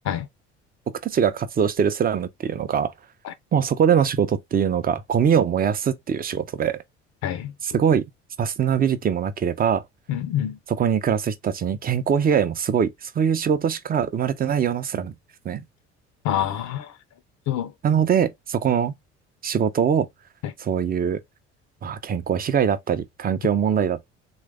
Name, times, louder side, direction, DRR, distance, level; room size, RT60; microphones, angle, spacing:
voice 1, 1.0-2.9 3.5-6.8 7.6-8.1 8.4-9.8 10.7-15.1 15.4-15.6 17.8-18.9 19.4-20.1 20.6-21.2 21.8-24.1, right 8 dB, 25° right, 0.5 m, -22 dB
voice 2, 7.2-7.5 10.1-10.6 16.2-16.9 17.5-17.7, left 10 dB, 50° left, 0.6 m, -26 dB
3.3 x 2.3 x 3.2 m
hypercardioid pair, 60°, 35 cm